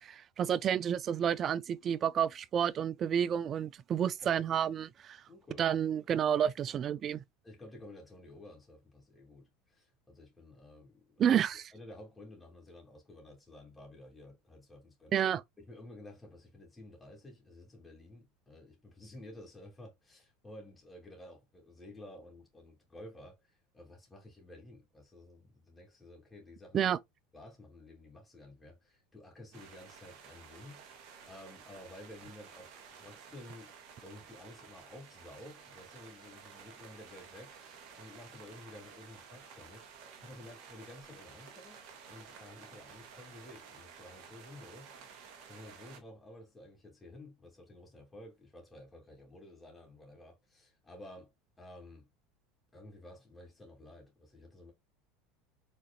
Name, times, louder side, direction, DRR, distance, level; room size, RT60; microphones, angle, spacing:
voice 1, 0.0-5.2 5.6-7.2 11.2-11.6 15.1-15.4 26.7-27.0, right 9 dB, 40° right, 0.3 m, -30 dB
voice 2, 5.3-5.6 7.4-11.4 11.7-15.1 15.6-26.9 27.3-30.8 31.3-33.7 34.0-41.8 42.1-44.9 45.5-51.3 51.6-52.1 52.7-54.7, left 1 dB, 15° left, 2.7 m, -52 dB
sound 1, 29.5-46.0, right 6 dB, 60° right, 1.8 m, -53 dB
5.1 x 4.0 x 2.3 m
hypercardioid pair, 80°, 0 cm